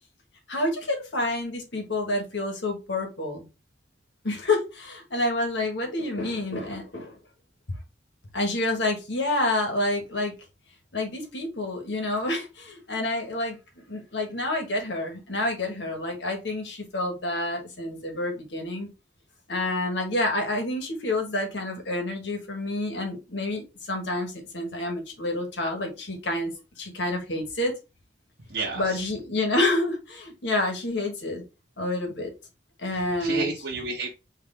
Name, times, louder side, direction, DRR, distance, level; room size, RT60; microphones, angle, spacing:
voice 1, 0.5-3.5 4.2-7.2 8.3-10.3 10.9-18.9 19.5-27.7 28.7-31.4 31.8-32.3 32.8-33.5, left 2 dB, 75° left, 1.4 m, -28 dB
voice 2, 28.5-29.0 32.9-34.1, right 3 dB, 70° right, 0.9 m, -31 dB
3.9 x 3.2 x 3.3 m
head